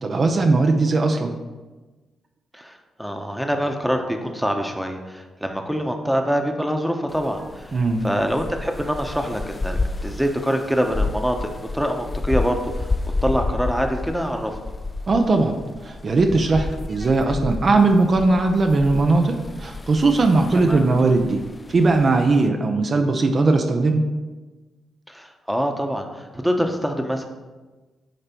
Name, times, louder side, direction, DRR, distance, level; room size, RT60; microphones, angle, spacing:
voice 1, 0.0-1.4 7.7-8.0 15.1-15.5 15.8-21.4 21.7-24.0, right 3 dB, 50° right, 4 dB, 0.6 m, -19 dB
voice 2, 3.0-7.6 8.0-12.9 13.2-14.5 20.7-20.9 25.1-27.2, equal, ahead, 4 dB, 1.0 m, -25 dB
sound 1, 7.1-22.5, left 3 dB, 30° left, 0.4 m, -31 dB
9.0 x 3.3 x 4.4 m, 1.2 s
hypercardioid pair, 45°, 0 cm